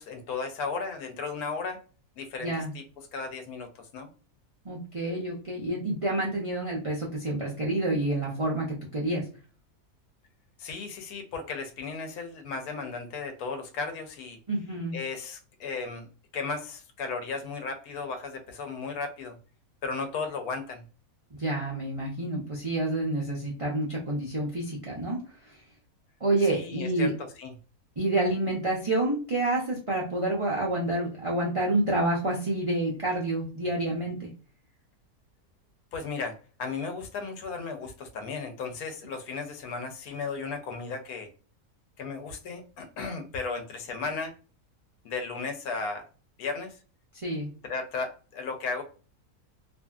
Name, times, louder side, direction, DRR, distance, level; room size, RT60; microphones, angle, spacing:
voice 1, 0.0-1.8 2.2-4.1 10.6-14.4 14.9-19.4 19.8-20.8 26.4-27.5 35.9-41.3 42.0-44.3 45.0-46.1 46.4-46.8 47.6-48.8, left 4 dB, 75° left, 5 dB, 1.1 m, -35 dB
voice 2, 2.4-2.7 4.6-9.3 14.5-15.0 21.4-25.2 25.5-25.6 26.2-27.1 28.0-34.3 47.1-47.5, right 2 dB, 60° right, -4 dB, 0.3 m, -28 dB
2.7 x 2.6 x 2.2 m, 0.37 s
omnidirectional pair, 1.6 m